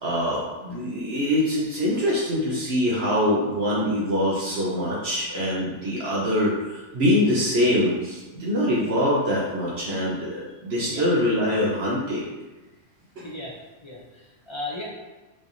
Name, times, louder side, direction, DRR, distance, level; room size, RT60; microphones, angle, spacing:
voice 1, 0.0-12.3 13.2-13.3, left 1 dB, 60° right, -6 dB, 1.1 m, -24 dB
voice 2, 13.2-14.9, left 2 dB, 30° left, -4 dB, 0.6 m, -36 dB
5.4 x 3.3 x 2.6 m, 1.1 s
omnidirectional pair, 1.3 m